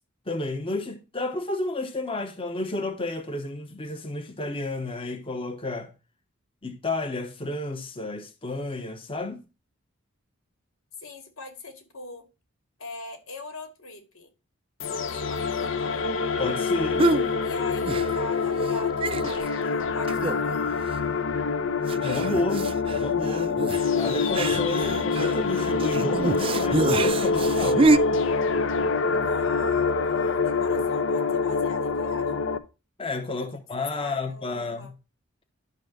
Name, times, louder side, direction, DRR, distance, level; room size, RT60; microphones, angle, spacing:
voice 1, 0.3-5.9 6.6-9.4 16.4-17.1 22.0-23.5 23.9-27.9 33.0-34.9, left 2 dB, 25° left, 1.0 m, -31 dB
voice 2, 11.0-12.2 12.8-14.3 14.9-16.0 17.4-20.9 29.1-32.4 33.4-33.5 33.8-34.9, left 3 dB, 90° left, 2.3 m, -42 dB
sound 1, 14.8-32.6, left 4 dB, 65° left, 0.8 m, -25 dB
sound 2, 17.0-17.3 17.8-18.4 18.6-18.7 19.0-19.6 20.1-20.6 20.9-21.0 21.9-28.0, right 3 dB, 25° right, 0.4 m, -26 dB
11.0 x 4.0 x 6.5 m
head